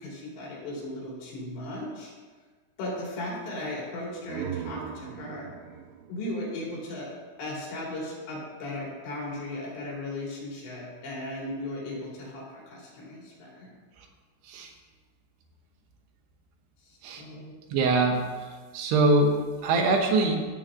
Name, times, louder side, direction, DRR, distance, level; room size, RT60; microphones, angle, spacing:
voice 1, 0.0-2.1 2.8-5.5 6.1-7.1 7.4-13.8 16.9-17.5, left 1 dB, 70° left, -4 dB, 5.3 m, -36 dB
sound 1, 4.0-7.6, right 9 dB, 90° right, 3.0 m, -40 dB
voice 2, 17.7-20.5, right 2 dB, 70° right, 2 dB, 3.1 m, -24 dB
15.0 x 7.2 x 3.8 m, 1.4 s
omnidirectional pair, 5.2 m